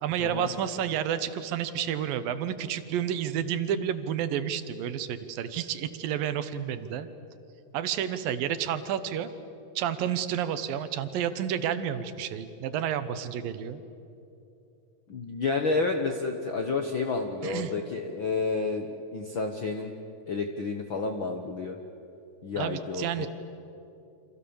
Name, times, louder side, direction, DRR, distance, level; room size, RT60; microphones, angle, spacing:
voice 1, 0.0-7.1 7.7-9.3 9.8-13.8 17.4-17.7 22.6-23.3, right 9 dB, 80° right, 11 dB, 2.8 m, -30 dB
voice 2, 15.1-18.9 19.1-19.9 20.3-21.8 22.4-23.3, left 4 dB, 65° left, 4 dB, 1.2 m, -30 dB
29.5 x 26.5 x 7.1 m, 2.8 s
omnidirectional pair, 4.0 m